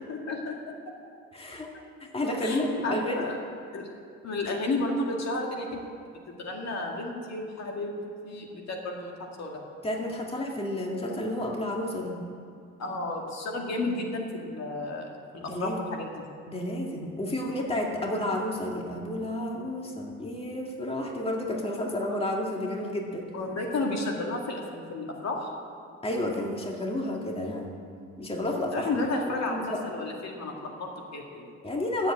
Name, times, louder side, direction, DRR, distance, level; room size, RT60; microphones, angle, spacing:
voice 1, 0.1-0.7 2.4-3.4 3.7-3.9 4.2-5.8 6.3-8.0 8.2-9.6 12.8-16.2 23.3-25.5 28.7-31.5, left 2 dB, 60° left, 1 dB, 2.2 m, -32 dB
voice 2, 1.3-1.7 2.1-3.2 9.8-12.2 15.4-15.8 16.5-23.3 26.0-27.7 28.2-29.0 29.3-29.8 31.6-32.1, left 1 dB, 20° left, 0 dB, 2.1 m, -31 dB
12.5 x 7.8 x 8.7 m, 2.4 s
cardioid pair, 90°, 30 cm